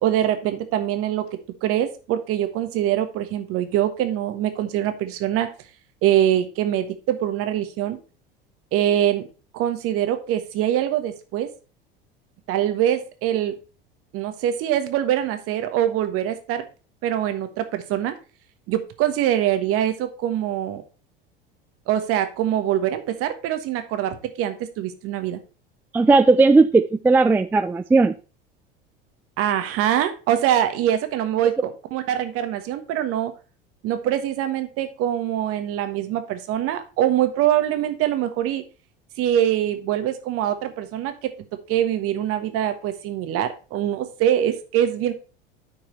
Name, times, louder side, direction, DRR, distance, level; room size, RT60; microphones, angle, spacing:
voice 1, 0.0-1.2 1.6-5.5 6.0-8.0 8.7-9.3 9.5-11.5 12.5-13.5 14.1-16.6 17.0-18.1 18.7-20.8 21.9-25.4 29.4-33.3 33.8-38.6 39.2-41.3 41.7-45.1, right 11 dB, 50° right, 9 dB, 1.4 m, -23 dB
voice 2, 25.9-28.1 31.4-31.5, right 3 dB, 5° right, 12 dB, 0.3 m, -16 dB
9.1 x 4.7 x 4.4 m, 0.34 s
hypercardioid pair, 75°, 29 cm